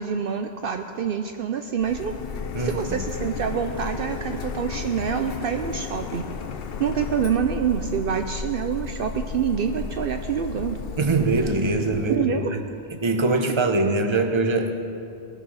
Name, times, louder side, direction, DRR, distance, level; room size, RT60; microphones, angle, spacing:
voice 1, 0.0-2.1 2.6-6.3 6.8-10.8 12.1-12.6, right 7 dB, 65° right, 6 dB, 0.7 m, -26 dB
Printer, 1.8-12.2, left 5 dB, 65° left, 0.9 m, -33 dB
voice 2, 2.5-3.0 11.0-12.6 13.0-14.7, right 2 dB, 30° right, 6 dB, 0.9 m, -23 dB
19.0 x 6.6 x 6.3 m, 2.5 s
omnidirectional pair, 1.1 m